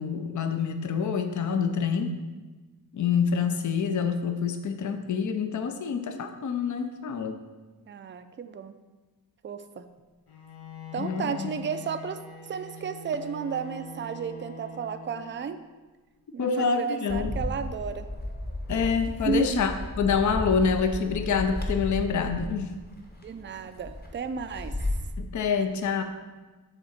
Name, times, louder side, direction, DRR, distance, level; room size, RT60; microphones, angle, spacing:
voice 1, 0.0-2.1 2.9-7.4 11.0-11.5 16.4-17.4 18.7-22.7 25.2-26.0, left 6 dB, 50° left, 7 dB, 0.5 m, -27 dB
voice 2, 7.9-8.7 9.4-9.9 10.9-15.6 16.3-18.1 19.1-19.6 23.2-24.7, right 6 dB, 35° right, 10 dB, 0.4 m, -33 dB
Bowed string instrument, 10.3-15.6, left 3 dB, 85° left, 1.1 m, -43 dB
Bird, 17.1-25.1, left 1 dB, 25° left, 1.0 m, -34 dB
6.7 x 3.7 x 5.7 m, 1.2 s
wide cardioid pair, 135°, 37 cm